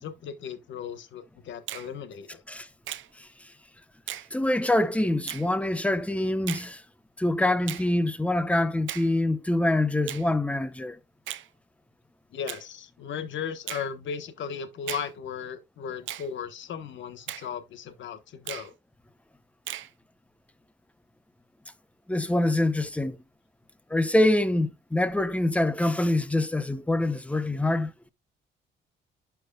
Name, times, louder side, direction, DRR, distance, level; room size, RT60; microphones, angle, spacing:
voice 1, 0.0-2.4 12.3-18.7, left 7 dB, 70° left, 1.2 m, -36 dB
Finger snapping, 1.7-1.9 2.9-3.1 4.1-4.3 5.3-5.5 6.5-6.7 7.7-7.9 8.9-9.1 10.1-10.3 11.3-11.5 12.5-12.7 13.7-13.9 14.9-15.1 16.1-16.3 17.3-17.5 18.5-18.7 19.7-19.9, right 13 dB, 75° right, 0.6 m, -36 dB
voice 2, 3.2-3.5 4.3-6.8 7.2-11.0 22.1-23.2 23.9-27.9, left 1 dB, 5° left, 0.8 m, -25 dB
11.5 x 4.6 x 2.3 m
cardioid pair, 90°, 20 cm